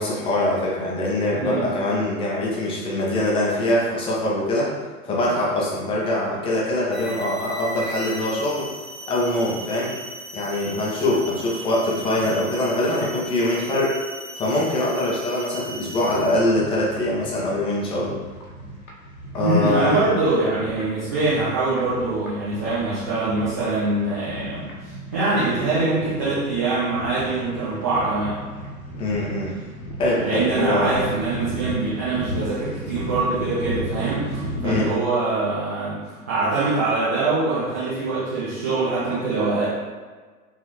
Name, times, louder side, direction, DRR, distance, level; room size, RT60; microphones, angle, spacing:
voice 1, 0.0-4.7 5.0-8.7 9.1-9.9 10.3-14.0 14.4-18.2 19.3-20.0 29.0-29.5 30.0-30.9 34.6-34.9, left 1 dB, 10° left, -5 dB, 0.7 m, -23 dB
voice 2, 1.3-1.7 19.4-28.4 30.2-39.7, right 3 dB, 10° right, -12 dB, 0.3 m, -24 dB
sound 1, 6.9-16.5, right 1 dB, 40° right, 1.3 m, -37 dB
sound 2, 16.0-34.9, equal, 65° left, 1.0 m, -35 dB
5.2 x 2.7 x 3.0 m, 1.4 s
figure-of-eight pair, 100°, 45 cm